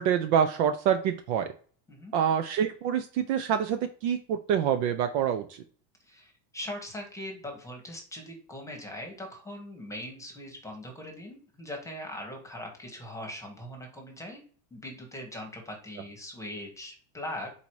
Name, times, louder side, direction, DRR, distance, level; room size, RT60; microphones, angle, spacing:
voice 1, 0.0-1.5 2.1-5.6, right 8 dB, 50° right, 8 dB, 0.5 m, -26 dB
voice 2, 6.0-14.4 14.7-17.5, left 1 dB, 5° left, 3 dB, 1.1 m, -41 dB
4.1 x 2.8 x 4.6 m, 0.43 s
supercardioid pair, 145°, 47 cm